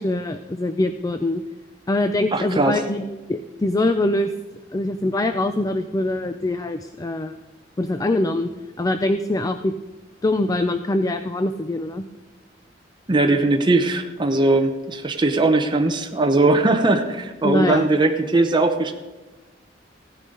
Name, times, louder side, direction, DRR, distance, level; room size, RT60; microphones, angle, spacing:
voice 1, 0.0-1.4 1.9-3.0 3.3-4.3 4.7-7.4 7.8-8.5 8.8-9.7 10.2-12.0 17.4-17.9, left 2 dB, 20° left, 9 dB, 0.4 m, -23 dB
voice 2, 2.3-2.8 13.1-18.9, right 2 dB, 25° right, 4 dB, 0.8 m, -19 dB
16.0 x 10.0 x 3.8 m, 1.2 s
head